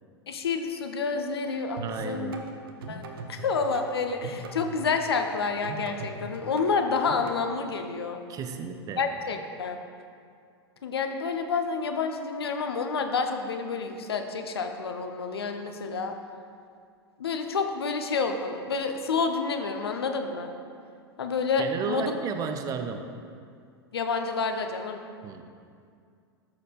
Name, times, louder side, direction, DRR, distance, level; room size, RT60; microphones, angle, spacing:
voice 1, 0.3-2.4 2.9-8.2 9.0-9.8 10.8-16.1 17.2-20.5 21.2-22.2 23.9-25.0, left 4 dB, 70° left, 5 dB, 0.7 m, -29 dB
voice 2, 1.8-2.4 8.3-9.2 21.6-23.1 25.2-25.5, right 6 dB, 25° right, 7 dB, 0.5 m, -33 dB
sound 1, 1.8-7.4, right 3 dB, 60° right, 0.8 m, -40 dB
14.0 x 6.7 x 2.4 m, 2.3 s
figure-of-eight pair, 90°, 14 cm